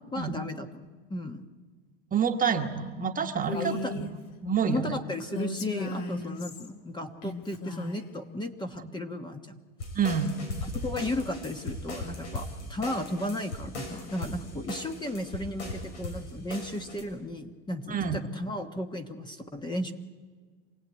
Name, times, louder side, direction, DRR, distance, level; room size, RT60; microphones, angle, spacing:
voice 1, 0.1-0.8 1.1-1.5 3.5-3.9 4.7-9.6 10.7-19.9, left 1 dB, 15° left, 6 dB, 1.3 m, -34 dB
voice 2, 2.1-5.0 8.8-8.9 9.9-10.4 17.9-18.2, right 7 dB, 25° right, 5 dB, 1.4 m, -28 dB
Female speech woman speaking, 3.4-4.1 5.2-6.7 7.2-8.1, left 2 dB, 60° left, 2.7 m, -36 dB
sound 1, 9.8-17.0, left 2 dB, 90° left, 6.5 m, -38 dB
26.5 x 17.5 x 9.2 m, 1.5 s
supercardioid pair, 130°, 34 cm